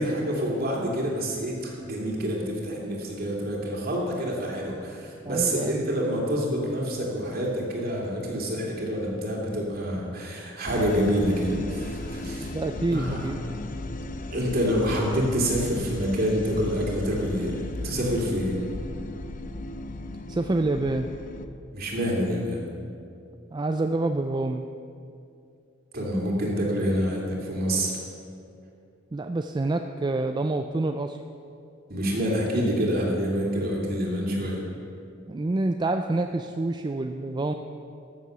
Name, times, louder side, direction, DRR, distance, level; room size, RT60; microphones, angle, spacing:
voice 1, 0.0-12.5 12.9-13.3 14.3-18.6 21.7-22.6 25.9-27.9 31.9-34.6, equal, 50° right, -2 dB, 2.8 m, -27 dB
voice 2, 5.3-5.8 12.5-13.4 20.3-21.1 23.5-24.7 29.1-31.2 35.3-37.5, right 2 dB, 20° right, 6 dB, 0.4 m, -27 dB
sound 1, 10.7-21.5, left 2 dB, 45° left, 0.6 m, -36 dB
14.0 x 7.8 x 6.7 m, 2.5 s
head